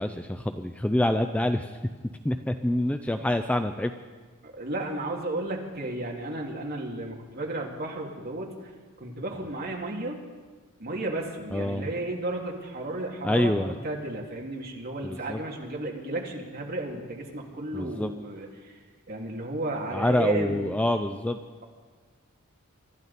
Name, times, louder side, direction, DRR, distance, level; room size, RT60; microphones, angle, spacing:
voice 1, 0.0-1.7 2.2-3.9 11.5-11.9 13.2-13.7 15.0-15.4 17.7-18.1 19.9-21.4, left 1 dB, 5° left, 8 dB, 0.4 m, -26 dB
voice 2, 4.4-8.7 9.0-10.2 10.8-18.8 19.1-20.7, right 2 dB, 45° right, -1 dB, 2.3 m, -33 dB
25.0 x 12.5 x 4.1 m, 1.4 s
head